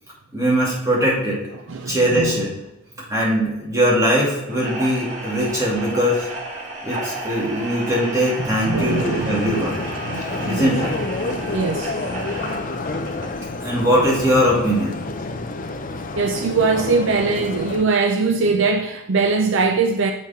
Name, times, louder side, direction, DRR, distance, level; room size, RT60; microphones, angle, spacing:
voice 1, 0.3-1.4 1.9-2.5 3.1-6.3 6.8-9.8 10.4-10.9 13.6-15.1, equal, 15° right, 2.8 m, -20 dB
voice 2, 1.7-2.3 8.7-9.7 10.0-10.7 11.5-11.9 16.1-20.1, right 4 dB, 60° right, 0.5 m, -21 dB
sound 1, 4.5-13.4, right 2 dB, 35° right, 1.8 m, -33 dB
sound 2, 8.8-17.8, left 2 dB, 40° left, 0.6 m, -29 dB
7.5 x 5.8 x 4.4 m
head